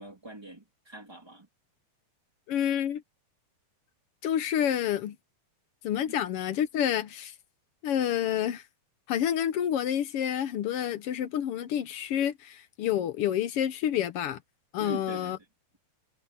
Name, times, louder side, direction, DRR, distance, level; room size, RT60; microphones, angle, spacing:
voice 1, 0.0-1.5 6.1-6.2 14.8-15.3, right 1 dB, 10° right, 1.3 m, -42 dB
voice 2, 2.5-3.0 4.2-5.2 5.8-7.3 7.8-8.6 9.1-14.4 14.7-15.4, left 10 dB, 65° left, 1.5 m, -28 dB
omnidirectional pair, 3.4 m